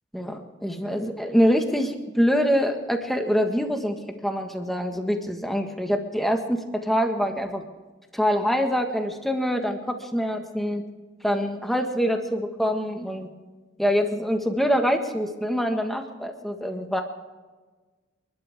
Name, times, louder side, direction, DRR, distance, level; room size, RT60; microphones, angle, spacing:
voice 1, 0.1-4.0 4.2-7.6 8.1-10.8 11.2-13.3 13.8-17.0, equal, ahead, 4 dB, 1.6 m, -25 dB
29.0 x 12.0 x 3.6 m, 1.3 s
head